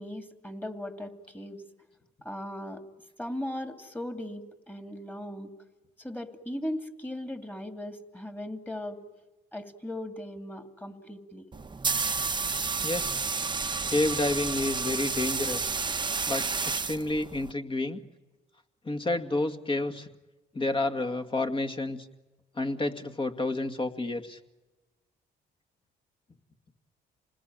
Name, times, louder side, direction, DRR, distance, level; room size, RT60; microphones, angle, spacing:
voice 1, 0.0-1.6 2.2-2.9 3.2-5.5 6.0-9.0 9.5-11.5, left 1 dB, 10° left, 7 dB, 2.8 m, -38 dB
sound 1, 11.5-17.5, right 4 dB, 25° right, 1.1 m, -30 dB
voice 2, 12.8-13.2 13.9-15.7 16.3-18.0 18.8-20.1 20.5-22.1 22.6-24.4, left 2 dB, 30° left, 8 dB, 2.2 m, -30 dB
28.0 x 20.5 x 9.0 m, 1.1 s
cardioid pair, 85°, 19 cm